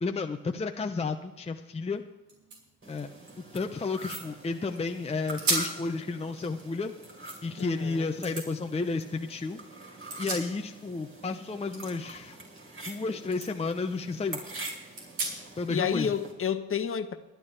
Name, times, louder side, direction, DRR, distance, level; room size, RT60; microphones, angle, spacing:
voice 1, 0.0-2.0 2.9-3.1 3.5-6.9 7.4-9.6 10.2-12.4 12.8-14.4 15.6-16.1, left 3 dB, 15° left, 0.8 m, -32 dB
sound 1, 1.9-2.0 2.2-4.4 4.9-5.0 5.4-5.8 6.2-7.6 8.2-8.5 9.8-10.9 11.2-13.0 13.3-13.5 14.0-14.1 14.9-15.7, right 3 dB, 65° right, 5.2 m, -36 dB
sound 2, 2.8-16.3, right 2 dB, 35° right, 4.1 m, -45 dB
voice 2, 7.6-8.1 15.7-17.2, left 7 dB, 35° left, 1.1 m, -30 dB
21.5 x 10.5 x 3.4 m
supercardioid pair, 70°, 37 cm